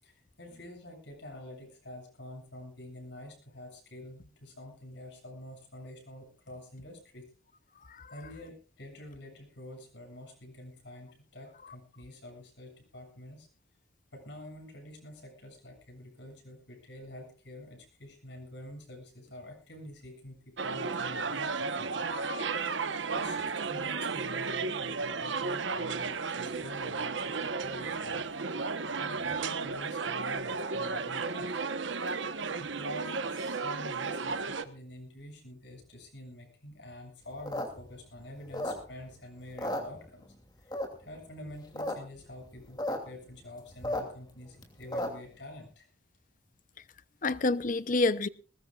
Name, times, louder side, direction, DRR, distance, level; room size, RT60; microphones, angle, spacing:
voice 1, 0.0-7.2 8.1-13.5 14.1-21.5 21.8-22.1 23.1-28.3 29.0-31.6 32.2-40.3 40.6-45.9, left 1 dB, 65° left, 7.5 m, -47 dB
sound 1, 20.6-34.6, right 4 dB, 75° right, 1.1 m, -33 dB
voice 2, 21.9-22.7 47.2-48.3, left 3 dB, 45° left, 0.7 m, -30 dB
sound 2, 37.3-39.1 39.5-40.4 40.7-41.2 41.6-41.9 42.2-42.3 42.5-43.0 43.3-45.3, left 1 dB, 20° left, 2.8 m, -34 dB
21.0 x 19.5 x 2.4 m
head